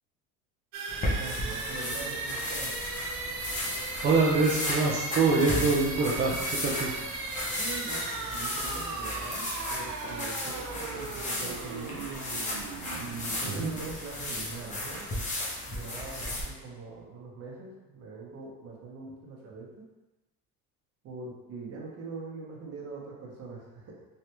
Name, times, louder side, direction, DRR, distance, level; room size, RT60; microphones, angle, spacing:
sound 1, 0.7-14.4, right 3 dB, 75° right, 0.6 m, -37 dB
sound 2, 0.9-16.4, left 1 dB, 20° left, 0.7 m, -35 dB
voice 1, 1.1-2.7 7.5-12.1 13.0-15.1 15.6-19.8 21.0-24.1, right 4 dB, 45° right, -3 dB, 0.9 m, -42 dB
voice 2, 4.0-6.9 13.5-13.7, right 3 dB, 30° right, -4 dB, 0.4 m, -25 dB
3.2 x 2.4 x 2.9 m, 1.1 s
cardioid pair, 125°, 34 cm